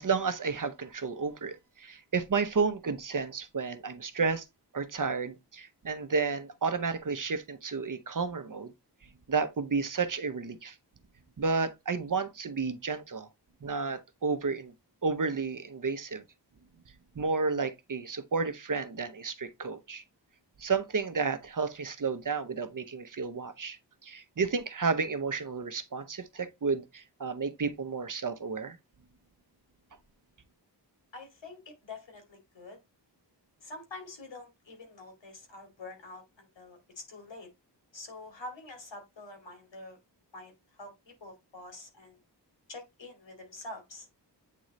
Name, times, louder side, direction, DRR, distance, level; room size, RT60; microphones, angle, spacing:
voice 1, 0.0-4.5 4.7-8.7 9.3-10.8 11.4-13.3 13.6-14.7 15.0-16.2 17.2-20.0 20.6-28.8, right 4 dB, 45° right, 0.8 m, -31 dB
voice 2, 31.1-32.8 33.6-37.5 37.9-40.0 40.3-40.5 40.8-40.9 41.2-42.2 42.7-44.1, left 2 dB, 90° left, 2.8 m, -46 dB
8.4 x 3.8 x 3.1 m
wide cardioid pair, 100°, 43 cm